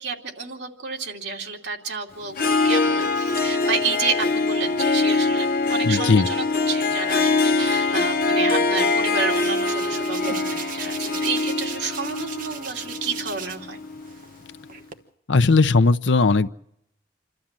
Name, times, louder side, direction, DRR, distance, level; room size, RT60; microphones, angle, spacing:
voice 1, 0.0-13.8, right 5 dB, 75° right, 0 dB, 2.7 m, -30 dB
Harp, 2.3-14.2, left 3 dB, 55° left, 0.7 m, -23 dB
voice 2, 5.8-6.3 15.3-16.5, left 3 dB, 85° left, 13 dB, 0.7 m, -17 dB
Hands, 8.7-13.7 14.0-14.9, right 6 dB, 50° right, 1.2 m, -38 dB
27.5 x 13.0 x 7.5 m, 0.77 s
head